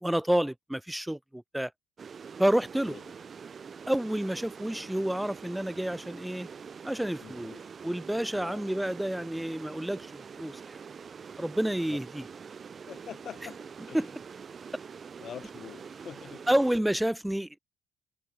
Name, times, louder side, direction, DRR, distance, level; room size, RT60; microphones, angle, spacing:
voice 1, 0.0-1.7 2.4-2.9 3.9-6.5 6.8-7.5 7.8-10.8 11.4-12.2 13.9-14.1 16.5-17.6, right 1 dB, 5° right, 0.7 m, -29 dB
sound 1, 2.0-16.8, right 6 dB, 45° right, 2.6 m, -45 dB
voice 2, 7.2-7.7 8.3-8.7 11.9-12.0 12.9-14.1 15.2-16.4, left 9 dB, 55° left, 2.5 m, -45 dB
supercardioid pair, 65°, 0 cm